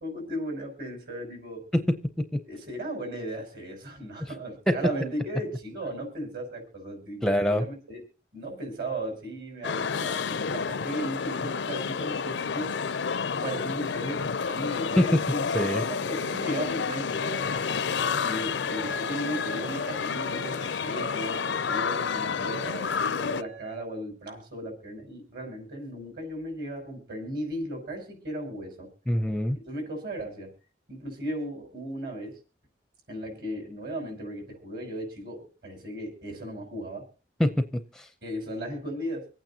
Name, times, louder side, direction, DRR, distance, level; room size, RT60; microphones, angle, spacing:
voice 1, 0.0-1.7 2.5-8.0 8.3-12.7 13.4-15.4 15.7-17.5 18.2-28.9 29.5-30.5 30.9-32.4 33.1-37.1 38.2-39.3, right 1 dB, 60° right, 2 dB, 5.8 m, -36 dB
voice 2, 7.2-7.6 15.0-15.2 15.5-15.8 29.1-29.6 37.4-38.1, equal, 5° left, 8 dB, 0.5 m, -24 dB
sound 1, 9.6-23.4, left 6 dB, 85° left, 0.5 m, -30 dB
sound 2, 17.2-23.8, right 8 dB, 80° right, 3.3 m, -44 dB
26.0 x 8.9 x 2.8 m, 0.34 s
head